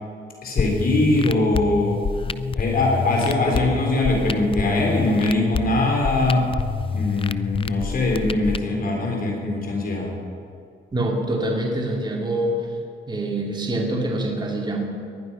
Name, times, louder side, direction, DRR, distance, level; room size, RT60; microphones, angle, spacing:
voice 1, 0.4-2.0 2.6-6.5 6.9-10.2, left 2 dB, 45° left, 0 dB, 3.8 m, -22 dB
sound 1, 0.6-8.6, left 6 dB, 25° left, 0.4 m, -27 dB
voice 2, 10.9-12.7 13.1-14.8, right 1 dB, 20° right, 0 dB, 2.6 m, -25 dB
19.5 x 11.5 x 5.5 m, 2.3 s
cardioid pair, 90°, 20 cm